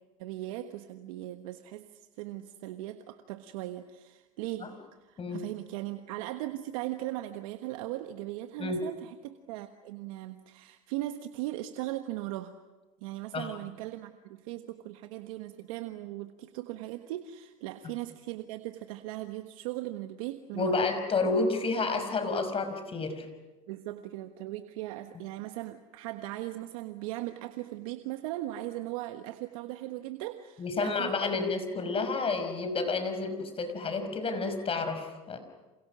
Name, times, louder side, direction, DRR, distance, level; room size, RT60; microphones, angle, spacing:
voice 1, 0.2-4.7 5.0-12.5 13.0-20.9 23.7-31.3, right 15 dB, 75° right, 7 dB, 1.4 m, -38 dB
voice 2, 20.5-23.3 30.6-35.4, left 3 dB, 30° left, 8 dB, 5.7 m, -30 dB
29.5 x 28.0 x 6.2 m, 1.2 s
hypercardioid pair, 90°, 18 cm